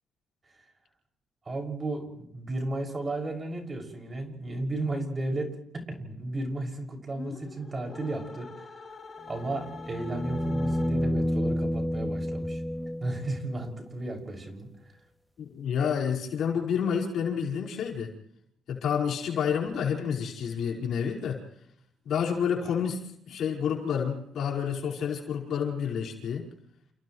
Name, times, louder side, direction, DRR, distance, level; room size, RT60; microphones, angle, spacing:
voice 1, 1.4-8.9 9.3-12.6 13.0-14.7, right 2 dB, 30° right, 6.4 m, -34 dB
sound 1, 7.1-11.3, left 4 dB, 40° left, 3.4 m, -45 dB
sound 2, 9.3-13.4 15.8-15.9, equal, 5° left, 2.2 m, -30 dB
voice 2, 15.4-18.1 18.7-21.4 22.0-23.0 23.3-26.5, left 7 dB, 70° left, 5.1 m, -29 dB
30.0 x 29.5 x 3.2 m
cardioid pair, 90°, 0 cm